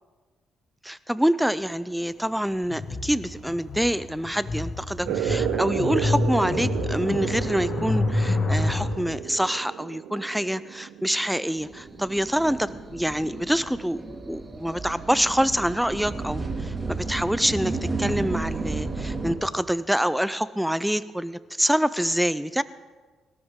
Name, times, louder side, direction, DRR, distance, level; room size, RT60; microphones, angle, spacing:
voice 1, 0.8-22.6, equal, 5° right, 16 dB, 0.4 m, -26 dB
sound 1, 2.7-8.8, left 2 dB, 45° left, 1.8 m, -28 dB
sound 2, 5.0-12.2, right 10 dB, 85° right, 0.6 m, -32 dB
sound 3, 11.6-19.3, right 3 dB, 20° right, 2.2 m, -32 dB
21.0 x 13.5 x 3.7 m, 1.4 s
cardioid pair, 90°, 0 cm